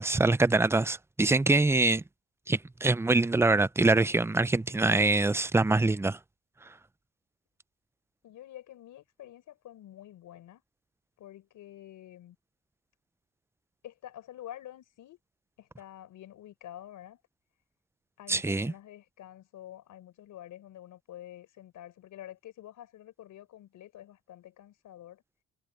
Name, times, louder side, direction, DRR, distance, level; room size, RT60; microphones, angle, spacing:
voice 1, 0.0-2.0 2.5-6.2 6.6-6.7 18.3-18.7, right 2 dB, 10° right, 0.5 m, -24 dB
voice 2, 8.2-10.6 11.2-12.4 13.8-15.2 15.6-17.2 18.2-25.2, left 12 dB, 80° left, 4.9 m, -48 dB
cardioid pair, 90°, 30 cm